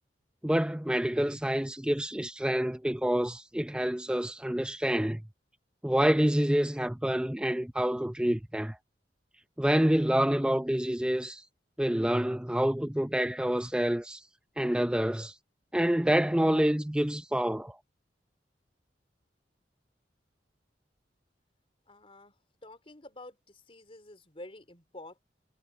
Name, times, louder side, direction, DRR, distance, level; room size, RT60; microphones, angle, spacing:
voice 1, 0.4-5.2 5.8-8.8 9.6-11.4 11.8-14.2 14.6-15.3 15.7-17.8, equal, 5° right, 0.6 m, -27 dB
voice 2, 21.9-25.2, left 1 dB, 30° left, 4.4 m, -49 dB
head